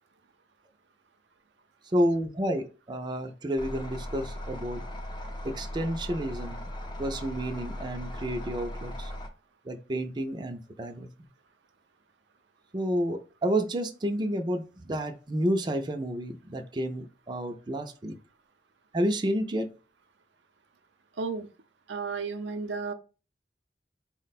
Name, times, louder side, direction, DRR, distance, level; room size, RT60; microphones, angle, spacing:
voice 1, 1.9-4.8 5.4-6.7 7.0-9.1 9.6-11.1 12.7-18.2 18.9-19.7, equal, 25° right, 0.4 m, -30 dB
sound 1, 3.6-9.3, left 1 dB, 25° left, 0.5 m, -38 dB
voice 2, 21.2-21.5 21.9-22.9, right 4 dB, 85° right, 0.5 m, -33 dB
4.3 x 2.1 x 4.0 m
head